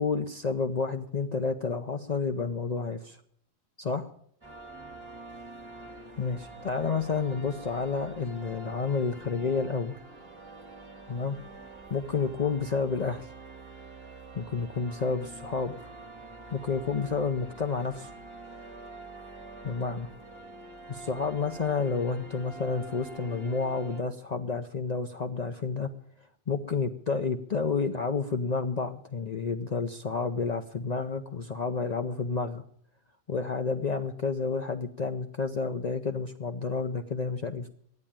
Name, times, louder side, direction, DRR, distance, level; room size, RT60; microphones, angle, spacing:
voice 1, 0.0-3.2 3.8-4.1 6.2-10.0 11.1-11.4 11.9-13.3 14.3-15.9 16.5-18.1 19.6-20.1 20.9-25.9 26.5-32.6 33.3-37.7, left 4 dB, 45° left, 7 dB, 0.8 m, -30 dB
sound 1, 4.4-24.0, right 3 dB, 25° right, 2.0 m, -46 dB
12.0 x 9.8 x 8.8 m, 0.66 s
omnidirectional pair, 1.1 m